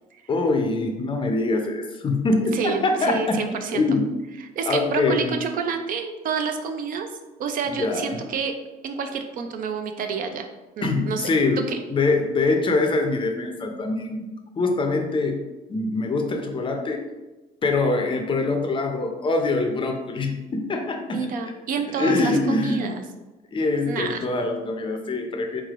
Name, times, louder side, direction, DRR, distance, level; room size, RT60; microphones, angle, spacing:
voice 1, 0.3-3.4 3.7-4.1 4.7-5.3 7.7-8.2 10.8-14.2 14.6-15.4 15.7-17.0 17.6-21.3 22.0-22.9 23.5-25.6, left 3 dB, 30° left, 4 dB, 0.5 m, -24 dB
voice 2, 2.5-3.8 4.4-7.1 7.4-8.5 8.8-10.5 10.8-11.3 11.7-11.8 21.1-23.0 23.9-24.3, right 6 dB, 55° right, 6 dB, 0.4 m, -28 dB
3.6 x 3.2 x 2.4 m, 1.1 s
cardioid pair, 110°, 17 cm